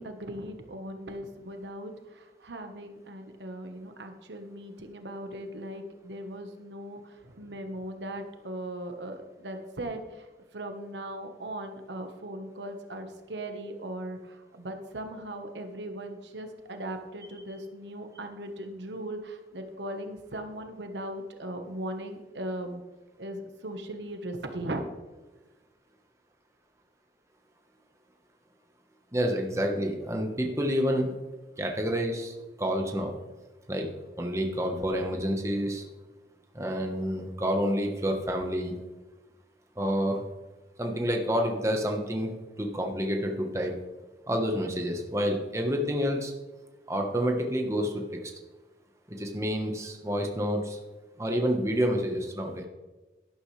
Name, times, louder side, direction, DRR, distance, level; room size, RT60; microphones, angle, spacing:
voice 1, 0.0-10.3 10.5-22.8 23.2-24.9, right 1 dB, 90° right, 6 dB, 1.2 m, -38 dB
voice 2, 29.1-31.1 31.6-33.1 33.7-33.9 34.2-35.8 36.5-38.7 39.8-40.3 40.8-42.3 42.6-43.7 44.3-46.3 46.9-48.0 49.1-50.8 51.2-52.7, equal, 15° right, 2 dB, 1.1 m, -28 dB
12.0 x 11.5 x 3.3 m, 1.2 s
head